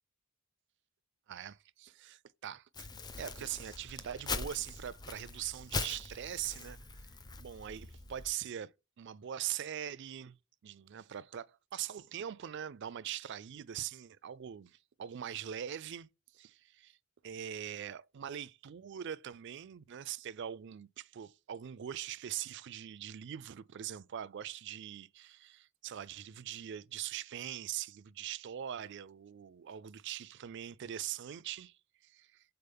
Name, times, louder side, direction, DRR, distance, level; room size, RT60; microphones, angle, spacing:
voice 1, 1.3-2.9 3.2-6.8 7.4-10.4 10.6-16.1 16.3-17.0 17.2-32.4, right 10 dB, 55° right, 0.4 m, -42 dB
Crumpling crinkling, 2.7-8.3, left 3 dB, 20° left, 0.5 m, -42 dB
6.8 x 4.0 x 3.5 m
head